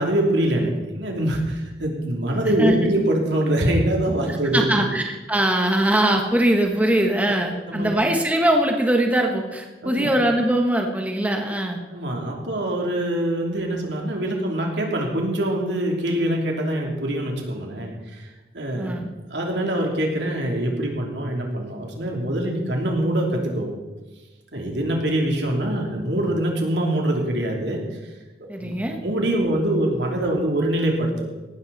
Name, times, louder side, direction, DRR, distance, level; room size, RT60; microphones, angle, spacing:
voice 1, 0.0-4.6 7.7-7.9 9.8-10.1 11.9-18.3 18.5-18.9 19.3-23.7 24.5-27.8 28.5-28.8 29.0-31.3, right 1 dB, 75° right, 0 dB, 3.2 m, -24 dB
voice 2, 4.5-11.8 18.8-19.1 28.5-29.0, right 1 dB, 10° right, 2 dB, 1.3 m, -21 dB
17.5 x 13.0 x 4.2 m, 1.2 s
head